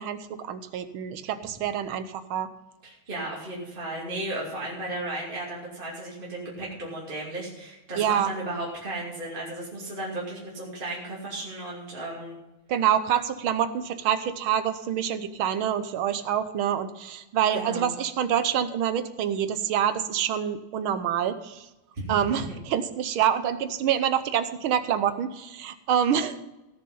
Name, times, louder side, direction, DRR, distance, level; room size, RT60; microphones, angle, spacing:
voice 1, 0.0-2.5 8.0-8.3 12.7-21.6 22.1-26.4, right 9 dB, 85° right, 11 dB, 1.7 m, -26 dB
voice 2, 2.8-12.4 17.5-17.9 21.9-22.6, right 1 dB, 25° right, -5 dB, 2.8 m, -35 dB
17.0 x 7.0 x 5.5 m, 0.97 s
omnidirectional pair, 2.3 m